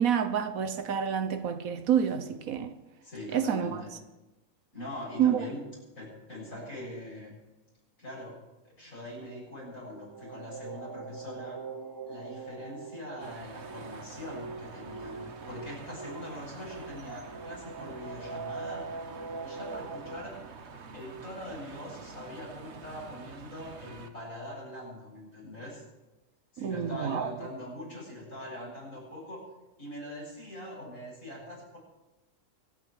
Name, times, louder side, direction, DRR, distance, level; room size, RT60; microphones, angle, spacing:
voice 1, 0.0-2.7 3.3-3.8 5.2-5.5 26.6-27.3, right 8 dB, 70° right, 1.3 m, -28 dB
voice 2, 3.0-3.9 4.7-5.6 6.0-7.4 8.0-8.4 8.6-11.6 12.1-18.9 19.4-20.4 20.9-25.8 26.5-29.5 29.8-31.8, left 1 dB, 65° left, 7.8 m, -42 dB
sound 1, 9.6-20.2, right 4 dB, 25° right, 0.4 m, -42 dB
sound 2, 13.2-24.1, right 5 dB, 50° right, 1.3 m, -47 dB
25.0 x 9.3 x 4.8 m
omnidirectional pair, 1.5 m